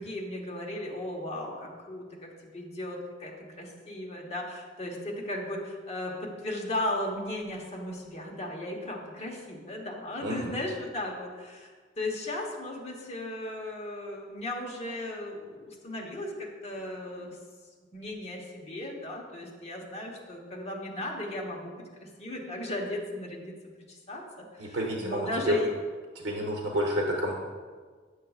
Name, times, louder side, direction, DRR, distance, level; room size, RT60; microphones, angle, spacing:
voice 1, 0.0-17.4 17.9-21.7 22.0-23.5 23.9-25.8, left 1 dB, 35° left, -1 dB, 1.0 m, -36 dB
voice 2, 10.2-10.5 24.6-25.5 26.2-27.3, equal, 80° right, -2 dB, 0.8 m, -29 dB
7.8 x 6.4 x 2.4 m, 1.5 s
head